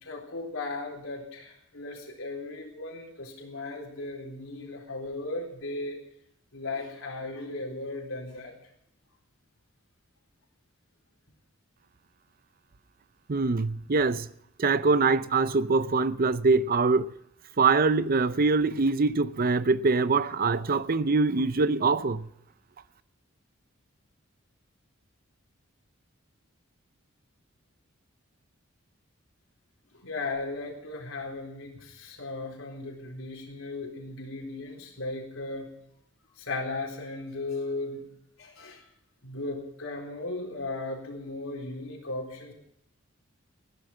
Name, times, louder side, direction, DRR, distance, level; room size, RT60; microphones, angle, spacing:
voice 1, 0.0-6.0 6.5-8.5 29.9-35.7 36.4-38.0 38.4-38.8 39.2-42.5, left 2 dB, 75° left, 4.0 m, -36 dB
voice 2, 13.3-14.3 14.6-17.1 17.6-22.3, right 4 dB, 45° right, 0.6 m, -24 dB
15.5 x 12.0 x 7.2 m
head